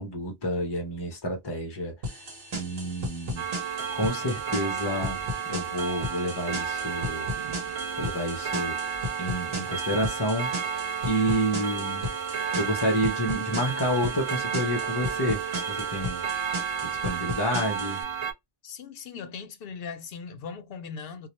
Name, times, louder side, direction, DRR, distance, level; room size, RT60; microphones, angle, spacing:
voice 1, 0.0-2.2 2.5-3.4 3.9-5.2 5.5-7.3 8.0-8.8 9.2-16.2 16.8-18.0, equal, 30° left, 0.5 m, -29 dB
sound 1, 2.0-18.0, left 1 dB, 75° right, 1.1 m, -37 dB
Clock, 3.4-18.3, right 7 dB, 55° right, 0.3 m, -32 dB
voice 2, 18.6-21.3, left 6 dB, 70° left, 0.7 m, -39 dB
2.3 x 2.1 x 2.9 m
omnidirectional pair, 1.0 m